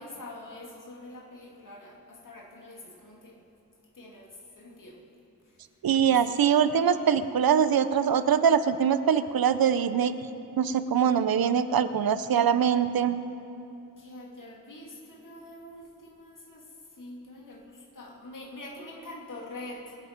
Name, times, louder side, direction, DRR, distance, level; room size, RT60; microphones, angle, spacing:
voice 1, 0.0-3.4 3.9-5.0 5.5-5.6 14.0-19.9, left 1 dB, 60° left, -2 dB, 2.5 m, -45 dB
voice 2, 5.8-10.2 10.6-13.2, right 8 dB, 85° right, 13 dB, 0.7 m, -23 dB
24.0 x 8.6 x 5.2 m, 2.8 s
wide cardioid pair, 110°, 35 cm